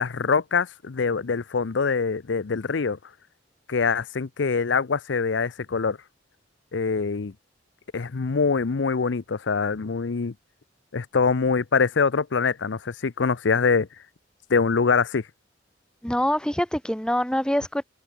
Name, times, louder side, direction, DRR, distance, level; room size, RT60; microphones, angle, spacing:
voice 1, 0.0-3.0 3.7-6.0 6.7-7.3 7.9-10.3 10.9-13.9 14.5-15.2, left 5 dB, 80° left, 0.6 m, -24 dB
voice 2, 16.0-17.8, equal, 5° left, 1.4 m, -25 dB
head